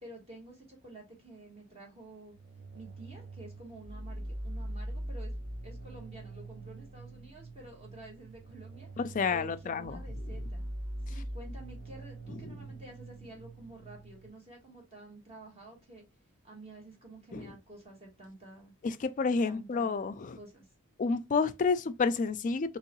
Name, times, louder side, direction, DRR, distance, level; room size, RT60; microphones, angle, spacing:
voice 1, 0.0-2.3 2.7-5.3 5.6-8.9 9.3-10.6 11.1-16.0 16.4-18.7 19.4-20.7, right 2 dB, 30° right, 1.1 m, -50 dB
sound 1, 2.3-14.3, right 1 dB, 65° right, 0.7 m, -42 dB
voice 2, 9.0-10.0 12.4-12.5 17.3-17.5 18.8-20.4 21.0-22.8, left 4 dB, 35° left, 0.3 m, -30 dB
3.6 x 3.0 x 2.9 m
head